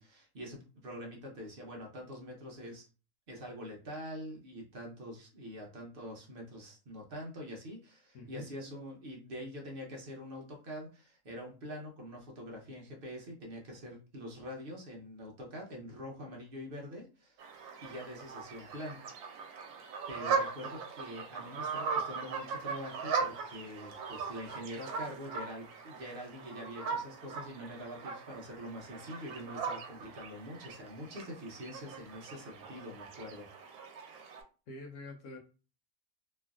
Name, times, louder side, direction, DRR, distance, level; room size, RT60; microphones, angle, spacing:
voice 1, 0.0-2.8 3.3-17.4 17.8-19.0 20.1-33.5, equal, 50° right, -1 dB, 0.7 m, -45 dB
voice 2, 8.1-8.5 34.7-35.4, left 2 dB, 80° left, 1 dB, 1.1 m, -45 dB
sound 1, 17.4-34.4, right 5 dB, 90° right, 1.1 m, -39 dB
3.0 x 2.4 x 2.3 m, 0.35 s
omnidirectional pair, 1.6 m